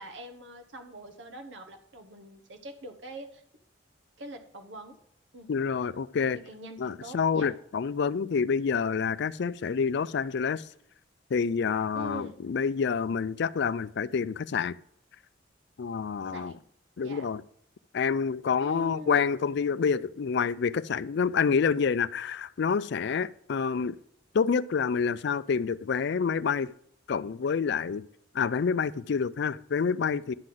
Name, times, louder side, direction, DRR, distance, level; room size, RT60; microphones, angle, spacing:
voice 1, 0.0-3.4 4.2-5.0 5.3-5.5 6.5-7.5 11.9-12.4 16.2-16.6 17.0-17.3 18.6-19.2, equal, 70° right, 1.1 m, -43 dB
voice 2, 5.5-6.4 6.8-10.6 11.3-14.8 15.8-16.5 17.0-17.4 17.9-24.0 24.3-26.7 27.1-28.0 28.3-30.3, left 6 dB, 65° left, 0.4 m, -28 dB
11.5 x 3.9 x 7.7 m
head